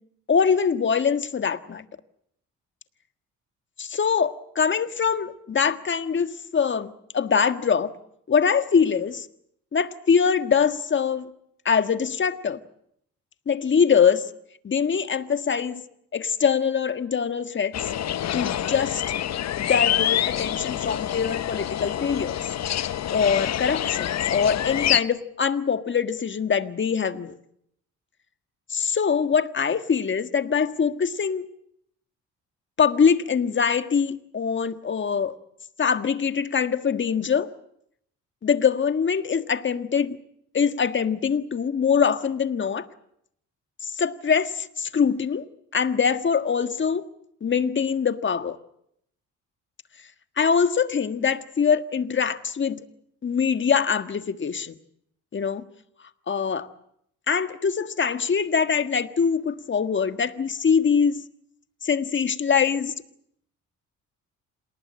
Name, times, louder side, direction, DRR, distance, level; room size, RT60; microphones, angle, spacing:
voice 1, 0.3-1.8 3.8-7.9 8.3-9.3 9.7-11.3 11.6-12.6 13.5-14.2 14.6-15.8 16.1-17.8 18.3-19.0 19.6-22.4 23.1-27.4 28.7-31.5 32.8-35.3 35.8-37.5 38.4-40.2 40.5-42.9 43.8-45.4 45.7-47.0 47.4-48.6 50.4-52.8 53.2-54.7 55.3-55.6 56.3-56.7 57.3-61.2 61.8-62.9, left 6 dB, 40° left, 10 dB, 1.6 m, -23 dB
sound 1, 17.7-25.0, left 11 dB, 60° left, 1.0 m, -26 dB
27.5 x 19.0 x 8.7 m, 0.73 s
cardioid pair, 90°, 30 cm